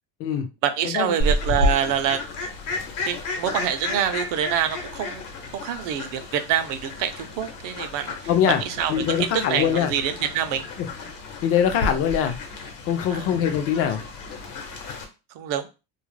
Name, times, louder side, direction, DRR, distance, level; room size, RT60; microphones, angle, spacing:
voice 1, 0.6-2.2 3.1-5.3 5.5-10.7 13.1-13.3 15.3-15.7, right 9 dB, 55° right, 0.5 m, -26 dB
Fowl, 1.2-15.0, left 2 dB, 75° left, 0.9 m, -31 dB
voice 2, 8.3-8.6 8.9-9.9 10.8-10.9 11.4-12.4 12.9-14.0, left 9 dB, 40° left, 0.4 m, -22 dB
2.3 x 2.0 x 3.1 m
cardioid pair, 140°, 38 cm